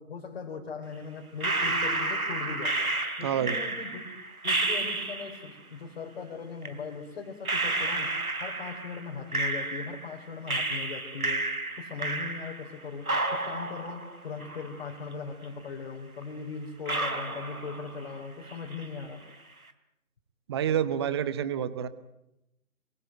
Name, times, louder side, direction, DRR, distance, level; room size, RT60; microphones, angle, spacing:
voice 1, 0.0-2.8 3.2-4.0 4.4-8.1 8.4-11.5 11.8-19.2, left 5 dB, 40° left, -1 dB, 4.5 m, -39 dB
sound 1, 1.4-5.5 6.6-6.7 7.5-10.1 10.5-12.8 13.1-15.1 15.4-15.5 16.2-16.3 16.9-18.2 18.5-19.0, right 2 dB, 85° right, 3.4 m, -31 dB
voice 2, 3.2-3.6 20.5-21.9, right 9 dB, 20° right, 15 dB, 1.0 m, -28 dB
28.5 x 23.0 x 9.2 m, 0.85 s
figure-of-eight pair, 140°, 42 cm